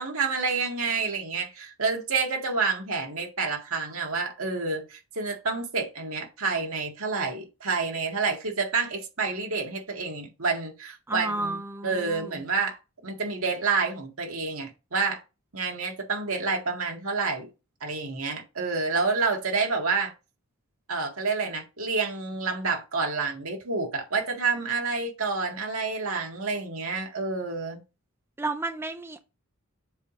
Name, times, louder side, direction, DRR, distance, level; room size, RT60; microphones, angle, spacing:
voice 1, 0.0-12.8 13.0-15.2 15.5-17.5 17.8-20.1 20.9-27.8, right 4 dB, 75° right, 1.9 m, -28 dB
voice 2, 11.1-12.3 28.4-29.2, right 2 dB, 10° right, 0.5 m, -32 dB
7.5 x 3.2 x 5.1 m
head